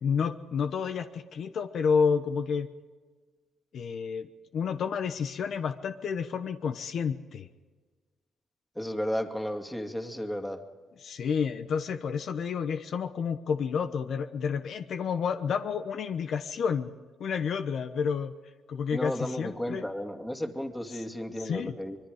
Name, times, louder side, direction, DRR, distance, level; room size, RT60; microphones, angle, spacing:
voice 1, 0.0-2.7 3.7-4.3 4.5-7.5 11.0-16.9 17.2-18.3 18.7-19.8 20.9-21.0 21.4-21.8, left 6 dB, 60° left, 9 dB, 1.1 m, -30 dB
voice 2, 8.8-10.6 18.9-22.0, equal, 5° left, 5 dB, 2.3 m, -33 dB
25.0 x 22.0 x 5.1 m, 1.4 s
cardioid pair, 90°, 0 cm